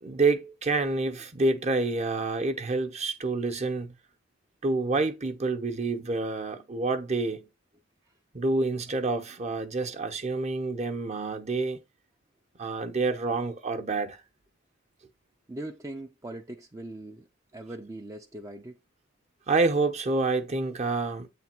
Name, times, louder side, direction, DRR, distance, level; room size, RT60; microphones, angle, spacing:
voice 1, 0.0-3.9 4.6-7.5 8.3-11.8 12.6-14.2 19.5-21.3, right 3 dB, 35° right, 0.8 m, -28 dB
voice 2, 15.5-18.8, right 1 dB, 15° right, 0.5 m, -41 dB
8.2 x 3.4 x 4.4 m
head